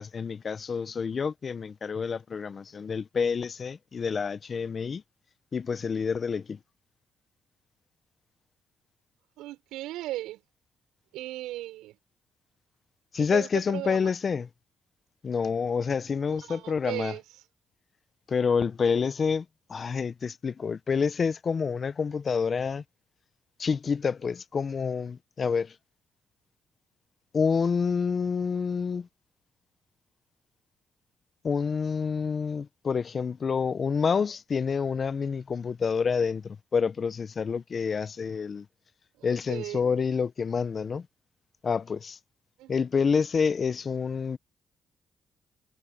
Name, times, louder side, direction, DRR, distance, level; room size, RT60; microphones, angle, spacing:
voice 1, 0.0-5.0 5.5-6.6 13.1-14.5 15.2-17.1 18.3-22.8 23.6-25.7 27.3-29.1 31.4-38.7 39.2-41.1 41.6-42.2 42.7-44.4, left 5 dB, 50° left, 1.5 m, -28 dB
voice 2, 9.4-10.4 11.1-12.0 13.1-14.1 16.3-17.2 39.2-39.8 42.6-42.8, right 16 dB, 85° right, 6.9 m, -37 dB
supercardioid pair, 55°, 0 cm